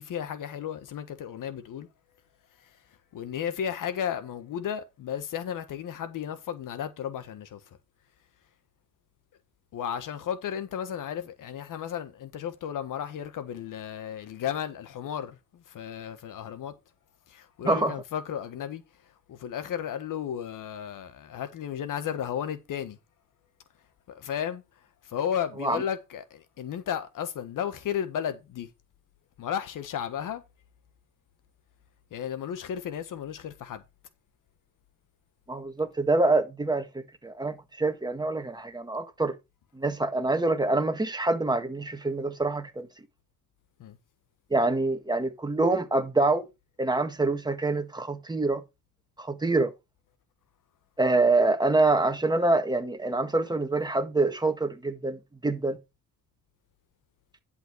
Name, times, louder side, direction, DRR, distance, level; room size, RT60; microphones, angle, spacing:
voice 1, 0.0-1.9 2.6-2.8 3.1-7.8 9.7-16.7 17.3-23.0 24.1-24.6 25.0-28.7 29.4-30.4 32.1-33.8 43.8-44.0, left 9 dB, 75° left, 1.4 m, -34 dB
voice 2, 17.6-17.9 25.6-25.8 35.5-39.4 39.7-42.9 44.5-46.5 46.8-48.6 49.2-49.7 51.0-55.8, right 2 dB, 15° right, 1.6 m, -26 dB
10.5 x 5.7 x 4.6 m
cardioid pair, 100°, 32 cm